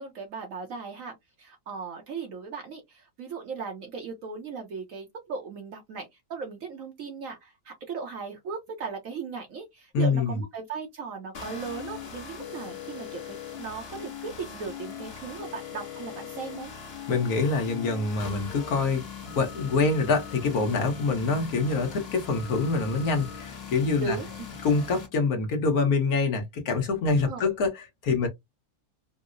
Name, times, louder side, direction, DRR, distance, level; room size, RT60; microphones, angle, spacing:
voice 1, 0.0-16.7 24.0-24.5 27.2-27.5, right 5 dB, 65° right, 1.1 m, -37 dB
voice 2, 9.9-10.4 17.1-19.1 19.3-24.2 24.6-28.3, left 4 dB, 70° left, 1.4 m, -25 dB
sound 1, 11.3-25.1, left 7 dB, 45° left, 1.0 m, -40 dB
4.5 x 2.0 x 2.5 m
omnidirectional pair, 1.7 m